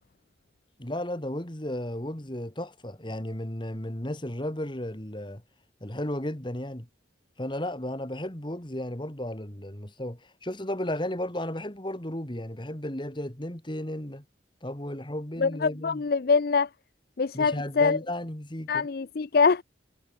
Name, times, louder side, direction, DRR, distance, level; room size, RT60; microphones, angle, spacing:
voice 1, 0.8-5.4 5.8-6.9 7.4-14.2 14.6-16.0 17.3-18.9, left 1 dB, 25° left, 2.4 m, -34 dB
voice 2, 15.4-16.7 17.2-18.0 18.7-19.6, left 5 dB, 50° left, 0.5 m, -24 dB
head